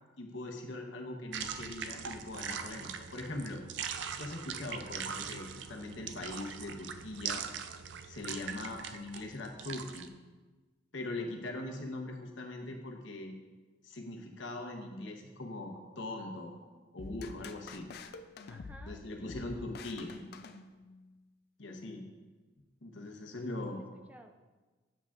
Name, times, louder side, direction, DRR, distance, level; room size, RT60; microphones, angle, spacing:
voice 1, 0.2-3.6 4.2-7.4 8.1-10.1 10.9-13.3 13.8-16.6 16.9-17.9 18.8-20.1 21.6-22.1 22.8-23.8, left 2 dB, 80° left, 2 dB, 1.0 m, -41 dB
sound 1, 1.3-10.1, right 7 dB, 70° right, 0.4 m, -41 dB
sound 2, 17.0-21.1, left 4 dB, 55° left, 0.4 m, -47 dB
voice 2, 18.5-19.7 23.6-24.4, right 1 dB, 10° right, 4 dB, 0.4 m, -55 dB
8.5 x 7.2 x 2.5 m, 1.3 s
head